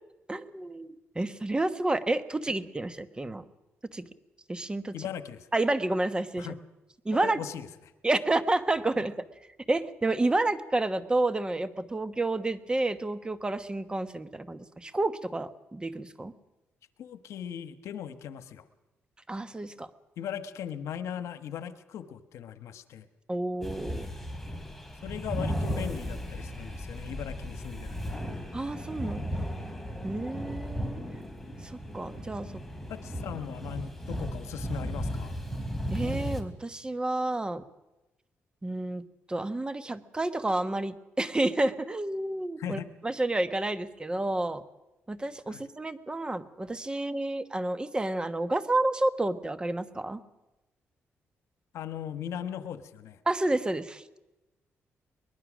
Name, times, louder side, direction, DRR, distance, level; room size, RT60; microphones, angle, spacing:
voice 1, 0.3-0.9 1.1-3.4 3.9-4.0 4.5-4.9 5.5-6.5 7.0-7.4 8.0-9.1 9.7-16.3 19.3-19.9 23.3-24.1 28.5-29.4 30.0-31.0 31.6-32.5 35.9-37.6 38.6-44.6 45.1-50.2 53.3-54.0, right 2 dB, 20° right, 12 dB, 1.2 m, -30 dB
voice 2, 4.9-5.5 6.4-6.6 7.1-7.7 17.0-18.6 20.2-23.1 25.0-28.2 32.9-35.4 42.6-42.9 45.5-45.6 51.7-53.2, left 9 dB, 85° left, 11 dB, 1.2 m, -38 dB
sound 1, 23.6-36.4, equal, 5° left, 3.1 m, -35 dB
23.0 x 20.5 x 6.3 m, 1.0 s
cardioid pair, 90°, 5 cm